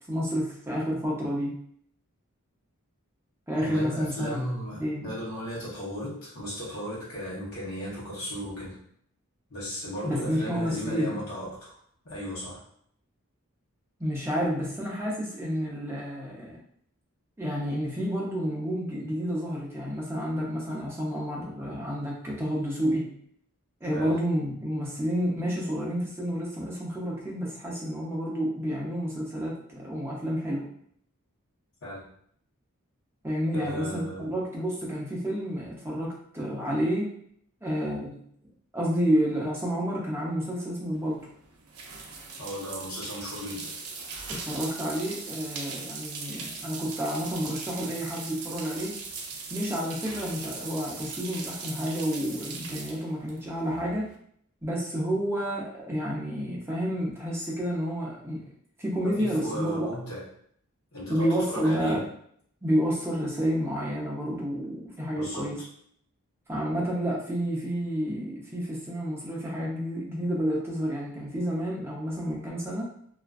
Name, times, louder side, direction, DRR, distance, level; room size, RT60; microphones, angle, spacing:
voice 1, 0.1-1.5 3.5-4.4 4.8-5.1 10.0-11.2 14.0-16.6 17.4-23.1 23.8-30.7 33.2-37.1 37.6-38.2 38.7-41.2 44.3-48.9 49.5-54.1 54.6-58.4 58.8-59.9 61.1-62.0 62.6-65.6 66.5-72.9, equal, 10° right, -4 dB, 0.5 m, -30 dB
voice 2, 3.6-8.8 9.5-11.8 12.0-12.6 23.9-24.2 31.8-32.0 33.5-34.3 42.4-43.7 59.2-60.2 60.9-62.0 65.1-65.5, equal, 70° left, -8 dB, 0.9 m, -36 dB
sound 1, 41.0-54.1, right 4 dB, 80° right, 0.4 m, -40 dB
2.4 x 2.2 x 2.3 m, 0.65 s
head